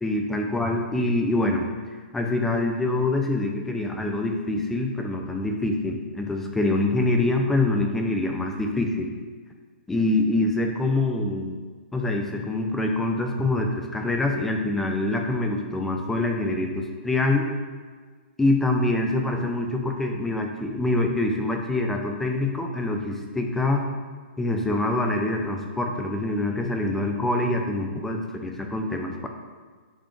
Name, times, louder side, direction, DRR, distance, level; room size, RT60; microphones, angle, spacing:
voice 1, 0.0-1.7 2.1-9.1 9.9-11.6 11.9-17.5 18.4-23.9 24.4-29.3, left 2 dB, 5° left, 3 dB, 0.5 m, -25 dB
10.0 x 4.1 x 3.2 m, 1.6 s
hypercardioid pair, 155°, 6 cm